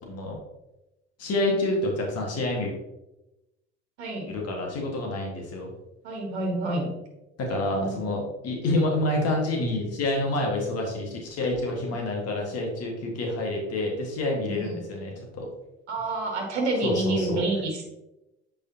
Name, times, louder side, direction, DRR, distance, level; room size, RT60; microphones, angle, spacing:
voice 1, 1.2-2.7 4.3-5.7 7.4-15.5 16.8-17.4, left 2 dB, 45° left, 0 dB, 1.7 m, -28 dB
voice 2, 4.0-4.3 6.0-6.9 7.7-8.0 14.4-14.8 15.9-17.9, right 2 dB, 75° right, 2 dB, 1.3 m, -28 dB
8.1 x 5.0 x 2.8 m, 0.95 s
hypercardioid pair, 65°, 33 cm